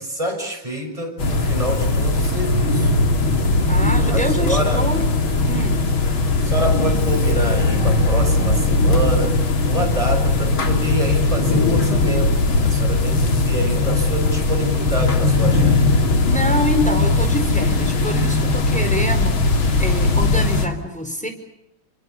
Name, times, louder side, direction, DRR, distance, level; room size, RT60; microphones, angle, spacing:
voice 1, 0.0-2.9 4.0-4.9 6.4-9.4 9.6-15.9, right 1 dB, 15° right, 2 dB, 6.9 m, -26 dB
sound 1, 1.2-20.7, left 2 dB, 75° left, 3.4 m, -19 dB
voice 2, 3.7-5.1 5.5-5.8 16.3-19.4 19.8-21.3, left 1 dB, 5° left, 5 dB, 4.7 m, -25 dB
28.5 x 25.0 x 7.0 m, 0.81 s
omnidirectional pair, 2.2 m